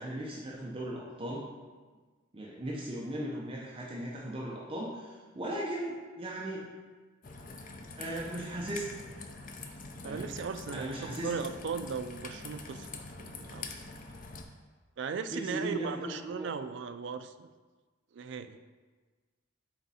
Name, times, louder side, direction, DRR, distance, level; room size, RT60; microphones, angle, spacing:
voice 1, 0.0-1.5 2.3-6.7 8.0-9.0 10.0-10.3 10.7-11.3 15.3-16.5, right 1 dB, 25° right, -4 dB, 0.7 m, -37 dB
Raindrop / Trickle dribble, 7.2-14.4, left 3 dB, 40° left, 0.5 m, -45 dB
voice 2, 10.0-13.7 15.0-17.5 18.1-18.6, right 5 dB, 60° right, 10 dB, 0.3 m, -37 dB
8.1 x 3.6 x 4.2 m, 1.4 s
head